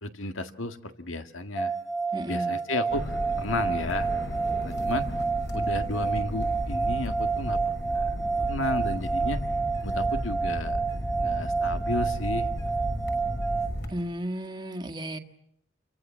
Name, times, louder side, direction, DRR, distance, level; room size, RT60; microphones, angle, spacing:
voice 1, 0.0-1.8 2.3-4.1 4.6-5.1 5.5-9.4 9.8-10.8 11.2-12.5, left 2 dB, 90° left, 7 dB, 1.8 m, -33 dB
sound 1, 1.6-13.7, right 4 dB, 5° right, 2.1 m, -29 dB
voice 2, 2.1-2.6 13.9-15.2, right 1 dB, 20° right, 6 dB, 1.6 m, -34 dB
sound 2, 2.9-13.9, equal, 60° left, 6.3 m, -34 dB
28.0 x 24.0 x 7.4 m, 0.73 s
head